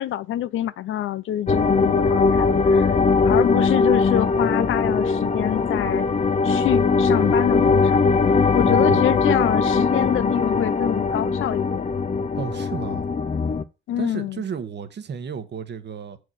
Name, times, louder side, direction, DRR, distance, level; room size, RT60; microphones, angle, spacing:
voice 1, 0.0-3.0 3.2-6.1 6.4-8.1 8.5-11.9 13.9-14.4, left 12 dB, 70° left, 0.5 m, -26 dB
sound 1, 1.5-13.6, left 4 dB, 35° left, 0.7 m, -20 dB
voice 2, 8.7-9.0 12.3-13.0 14.0-16.2, right 7 dB, 55° right, 1.2 m, -32 dB
7.0 x 4.7 x 6.4 m
supercardioid pair, 65°, 21 cm